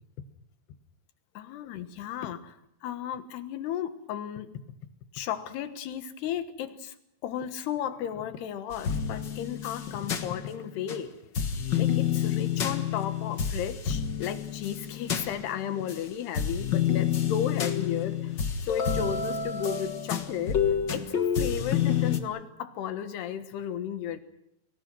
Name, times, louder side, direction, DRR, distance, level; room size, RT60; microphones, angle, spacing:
voice 1, 1.4-4.5 5.1-7.0 7.2-11.1 11.8-18.3 18.6-20.6 20.9-24.2, left 9 dB, 85° left, 10 dB, 3.5 m, -34 dB
sound 1, 8.7-11.0 11.3-16.0 16.3-22.2, left 8 dB, 60° left, 1.1 m, -29 dB
29.0 x 20.5 x 6.2 m, 0.79 s
omnidirectional pair, 4.6 m